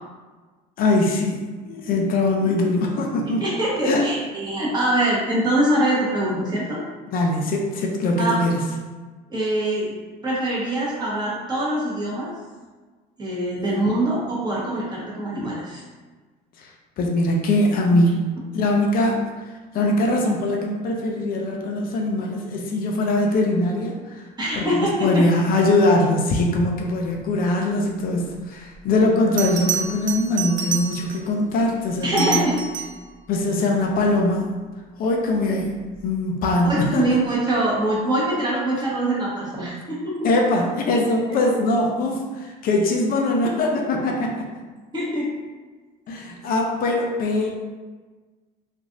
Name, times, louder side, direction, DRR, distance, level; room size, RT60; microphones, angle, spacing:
voice 1, 0.8-3.4 3.8-4.1 7.1-8.6 16.6-18.2 18.5-24.3 24.5-32.4 33.3-34.5 35.0-35.7 36.0-37.2 40.2-44.5 46.1-47.5, left 2 dB, 50° left, 0 dB, 0.5 m, -22 dB
voice 2, 3.4-6.8 8.2-8.4 9.3-9.9 10.2-12.3 13.2-15.8 24.4-25.2 32.0-32.6 36.6-40.3 44.9-45.3, right 1 dB, 20° right, -6 dB, 1.2 m, -23 dB
Bell, 28.7-28.8 29.4-31.3 32.0-33.1 35.8-36.0, right 6 dB, 45° right, 0.4 m, -28 dB
3.1 x 2.5 x 2.5 m, 1.3 s
supercardioid pair, 95°, 18 cm